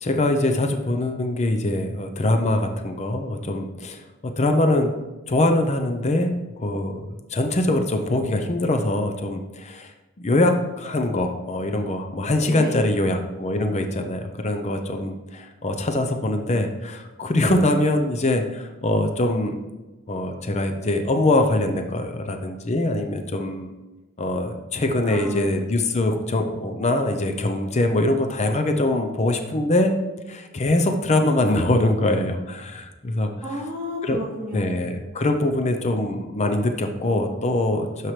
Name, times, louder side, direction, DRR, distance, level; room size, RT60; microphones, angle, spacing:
voice 1, 0.0-4.9 5.3-9.9 10.2-19.6 20.1-23.7 24.2-29.9 30.3-33.3 34.0-34.2 34.5-38.1, left 1 dB, 30° left, 5 dB, 0.6 m, -23 dB
voice 2, 12.4-13.0 25.0-25.5 33.4-34.8, equal, 5° right, -14 dB, 2.3 m, -32 dB
12.5 x 4.6 x 3.2 m, 1.1 s
head